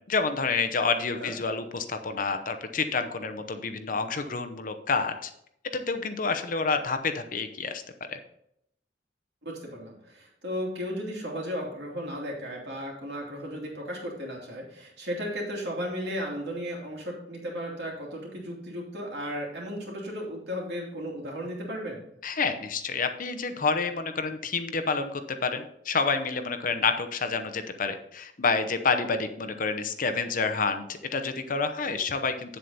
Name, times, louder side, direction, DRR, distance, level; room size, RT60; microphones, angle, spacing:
voice 1, 0.1-5.3 5.7-7.8 8.1-8.2 22.2-32.6, left 4 dB, 50° left, 9 dB, 0.8 m, -28 dB
voice 2, 9.4-22.0, equal, 65° right, -2 dB, 2.8 m, -35 dB
8.2 x 7.8 x 4.1 m, 0.75 s
head